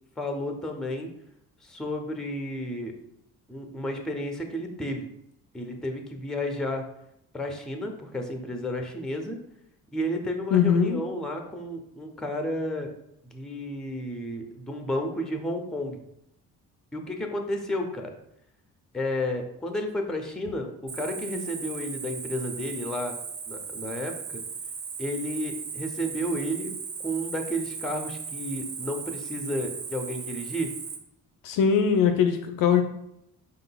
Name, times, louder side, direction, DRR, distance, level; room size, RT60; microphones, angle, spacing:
voice 1, 0.2-1.1 1.6-2.9 3.5-5.1 5.5-6.9 7.3-9.4 9.9-12.9 13.2-16.0 16.9-18.1 18.9-23.2 23.5-24.4 25.0-26.7 27.0-30.7, equal, ahead, 4 dB, 0.6 m, -32 dB
voice 2, 10.5-11.0 31.4-32.8, left 7 dB, 50° left, 7 dB, 0.5 m, -21 dB
Cricket, 20.9-31.0, right 6 dB, 50° right, 0.8 m, -37 dB
5.0 x 3.8 x 2.2 m, 0.79 s
figure-of-eight pair, 45°, 45 cm